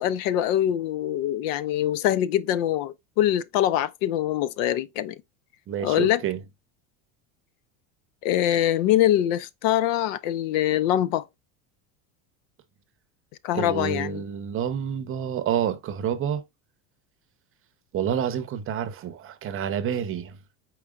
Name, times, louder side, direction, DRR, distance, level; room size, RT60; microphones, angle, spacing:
voice 1, 0.0-5.2 5.8-6.2 8.2-11.2 13.4-14.2, left 12 dB, 75° left, 0.6 m, -24 dB
voice 2, 5.7-6.4 13.5-16.4 17.9-20.4, right 9 dB, 35° right, 0.7 m, -28 dB
4.9 x 4.5 x 2.3 m
supercardioid pair, 120°, 39 cm